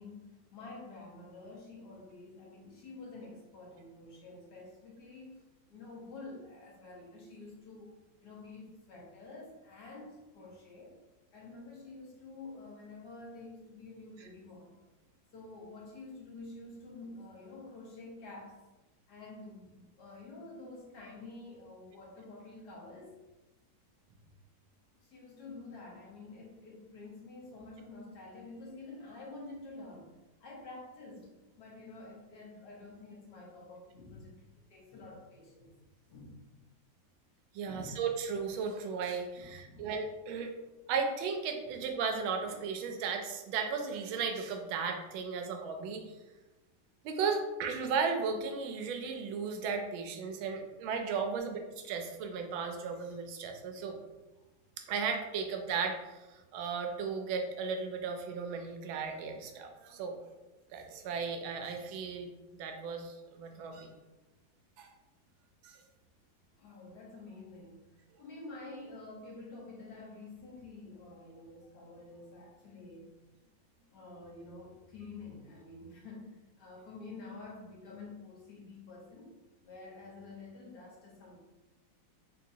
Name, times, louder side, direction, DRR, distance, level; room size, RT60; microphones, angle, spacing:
voice 1, 0.0-7.9 8.2-11.0 11.3-14.8 15.3-18.6 19.1-23.1 25.0-30.1 30.4-35.7 36.1-36.6 37.6-38.0 39.3-39.9 54.4-54.5 66.6-67.8 68.2-73.1 73.9-79.3 79.6-81.4, left 3 dB, 60° left, -3 dB, 1.3 m, -49 dB
voice 2, 37.5-40.5 40.9-46.1 47.0-51.6 51.9-54.0 54.9-60.2 60.7-63.9 64.8-64.9 65.6-65.8, right 5 dB, 90° right, 4 dB, 1.4 m, -35 dB
4.0 x 2.9 x 2.6 m, 1.1 s
omnidirectional pair, 2.1 m